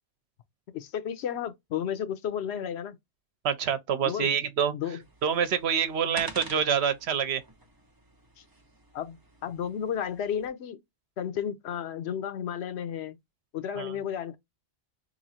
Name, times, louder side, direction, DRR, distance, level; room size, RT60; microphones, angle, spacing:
voice 1, 0.7-3.0 4.0-4.3 4.7-5.0 8.4-8.5 8.9-10.8 11.2-13.2 13.5-14.4, left 9 dB, 85° left, 0.9 m, -33 dB
voice 2, 3.4-4.7 5.2-7.4 13.8-13.9, right 7 dB, 85° right, 0.9 m, -26 dB
sound 1, 5.0-10.5, right 2 dB, 25° right, 0.7 m, -47 dB
3.0 x 2.6 x 4.2 m
omnidirectional pair, 1.1 m